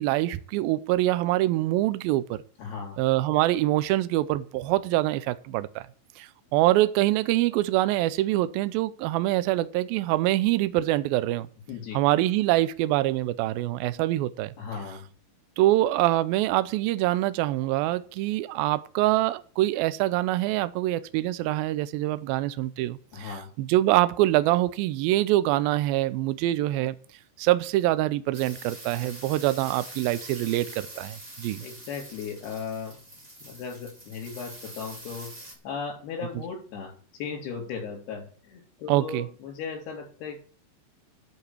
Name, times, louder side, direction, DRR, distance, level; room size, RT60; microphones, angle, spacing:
voice 1, 0.0-2.4 3.0-5.9 6.2-11.5 11.9-14.5 15.6-23.3 23.6-27.0 27.4-31.6 38.9-39.3, right 16 dB, 80° right, 2.3 m, -25 dB
voice 2, 2.6-3.0 11.7-12.0 14.6-15.1 23.1-23.5 31.6-33.0 33.4-40.4, left 6 dB, 70° left, 5.5 m, -37 dB
sound 1, 28.3-35.5, right 1 dB, 25° right, 0.8 m, -44 dB
11.0 x 5.1 x 8.4 m
omnidirectional pair, 4.7 m